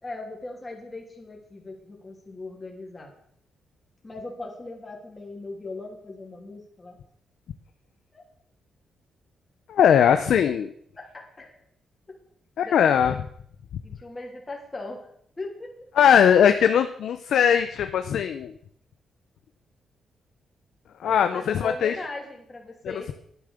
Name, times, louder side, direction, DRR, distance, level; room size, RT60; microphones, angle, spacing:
voice 1, 0.0-3.1 4.0-7.0 8.1-8.2 11.0-11.6 12.1-12.2 12.6-13.0 13.8-15.1 15.4-15.9 21.1-23.1, left 2 dB, 20° left, -1 dB, 3.1 m, -39 dB
voice 2, 9.7-10.7 12.6-13.1 16.0-18.5 21.0-21.9 22.8-23.1, left 8 dB, 75° left, 8 dB, 0.7 m, -20 dB
10.5 x 9.7 x 6.7 m, 0.67 s
cardioid pair, 105°, 0 cm